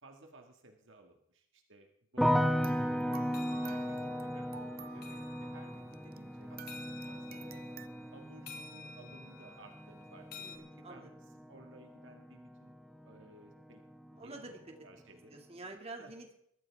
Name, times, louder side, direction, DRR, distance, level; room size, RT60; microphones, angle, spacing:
voice 1, 0.0-2.8 3.0-7.6 8.1-11.1 11.5-12.8 13.0-13.8 14.1-15.4 16.0-16.1, right 2 dB, 65° right, 3 dB, 1.9 m, -57 dB
sound 1, 2.2-13.2 13.5-14.3, equal, ahead, 0.7 m, -36 dB
sound 2, 2.4-6.3 6.6-7.9, right 9 dB, 50° right, 0.7 m, -52 dB
sound 3, 2.5-10.6, left 4 dB, 50° left, 2.6 m, -53 dB
voice 2, 10.4-11.1 14.1-14.7 15.3-16.4, right 2 dB, 30° right, 2 dB, 2.3 m, -48 dB
21.5 x 14.0 x 3.6 m, 0.72 s
head